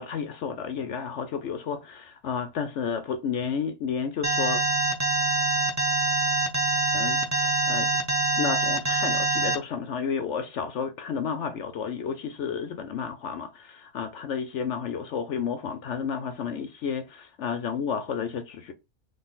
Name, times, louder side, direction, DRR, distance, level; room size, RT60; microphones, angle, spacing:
voice 1, 0.0-4.6 6.9-7.9 8.4-18.7, left 6 dB, 65° left, 0.8 m, -31 dB
Alarm, 4.2-9.6, right 2 dB, 15° right, 0.6 m, -24 dB
3.9 x 3.2 x 3.9 m
omnidirectional pair, 1.5 m